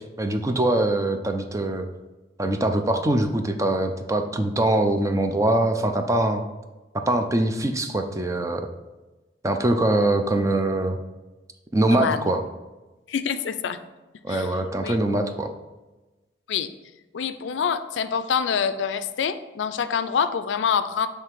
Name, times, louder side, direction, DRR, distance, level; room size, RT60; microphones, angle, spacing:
voice 1, 0.0-1.9 2.4-6.4 6.9-8.7 9.4-11.0 11.7-12.4 14.2-15.5, right 1 dB, 15° right, 5 dB, 0.4 m, -23 dB
voice 2, 11.9-12.3 13.1-13.8 14.3-14.5 14.8-15.0 16.5-16.7 17.1-21.1, left 7 dB, 75° left, 11 dB, 0.4 m, -26 dB
6.8 x 3.3 x 4.6 m, 1.1 s
head